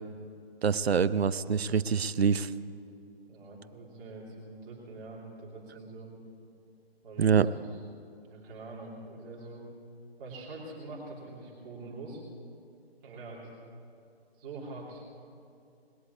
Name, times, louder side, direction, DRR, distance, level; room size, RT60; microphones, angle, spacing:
voice 1, 0.6-2.5 7.2-7.5, right 6 dB, 75° right, 15 dB, 0.7 m, -25 dB
voice 2, 3.3-6.1 7.0-7.5 8.2-9.7 10.2-12.2 13.0-13.5 14.4-15.0, right 2 dB, 20° right, -4 dB, 3.1 m, -44 dB
20.5 x 8.1 x 8.2 m, 2.5 s
figure-of-eight pair, 155°, 31 cm